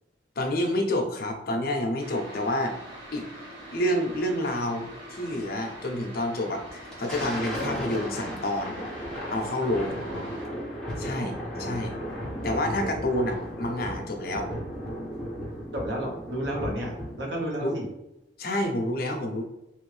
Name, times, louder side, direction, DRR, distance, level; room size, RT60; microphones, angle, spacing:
voice 1, 0.4-2.8 3.1-3.2 3.7-8.8 9.3-10.0 11.0-12.0 12.4-14.5 17.6-17.7 18.4-19.4, left 1 dB, 55° left, 3 dB, 0.6 m, -28 dB
sound 1, 2.0-10.4, equal, 45° right, 1.3 m, -44 dB
Thunder, 6.7-17.4, equal, 5° left, 0.8 m, -35 dB
voice 2, 9.7-10.4 11.2-11.9 13.3-13.5 15.7-17.9, equal, 70° right, -2 dB, 1.1 m, -33 dB
3.1 x 2.6 x 3.2 m, 0.90 s
head